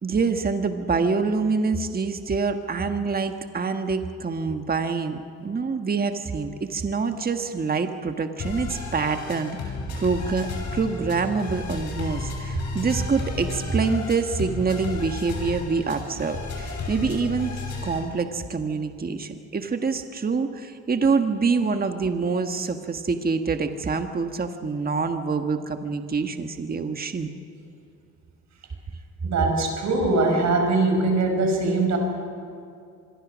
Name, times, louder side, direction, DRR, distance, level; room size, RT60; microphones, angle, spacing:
voice 1, 0.0-17.6 17.8-27.3, right 4 dB, 30° right, 7 dB, 1.5 m, -26 dB
sound 1, 8.4-18.0, left 3 dB, 65° left, 6.7 m, -33 dB
voice 2, 29.2-32.0, right 2 dB, 65° right, 3 dB, 6.0 m, -22 dB
25.5 x 22.0 x 6.3 m, 2.5 s
cardioid pair, 90°, 30 cm